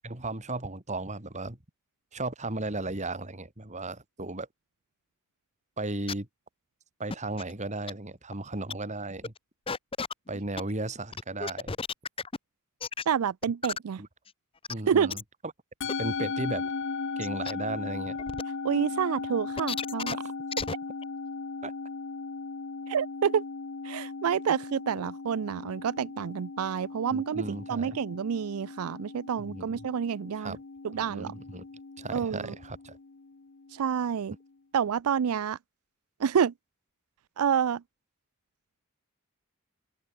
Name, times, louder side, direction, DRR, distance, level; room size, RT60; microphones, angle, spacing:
voice 1, 0.0-1.6 2.1-4.5 5.8-6.3 7.0-9.3 10.3-11.7 14.0-14.1 14.7-15.2 16.0-16.6 17.2-18.2 20.1-20.3 21.6-21.7 27.1-28.0 29.4-29.9 30.4-30.6 31.0-31.7 32.0-33.0, right 2 dB, 35° right, 2.6 m, -35 dB
sound 1, 6.1-6.2 7.1-7.5 7.9-8.0 8.3-8.4 8.7-8.8 9.2-9.4 9.7-10.7 11.1-12.4 12.8-13.0 13.4-13.8 14.3-14.4 14.6-14.7 15.1-15.2 15.9-16.0 16.6-16.7 17.2-17.5 18.2-18.4 19.6-20.1 20.5-20.7 21.0-21.1, left 5 dB, 25° left, 0.9 m, -33 dB
voice 2, 13.1-14.0 14.9-15.2 18.6-20.2 22.9-23.4 23.8-30.6 30.8-31.3 32.1-32.5 33.7-34.3 34.7-35.6 36.2-36.5 37.4-37.8, right 7 dB, 85° right, 0.4 m, -28 dB
Musical instrument, 15.8-34.3, left 4 dB, 55° left, 0.8 m, -38 dB
open air
head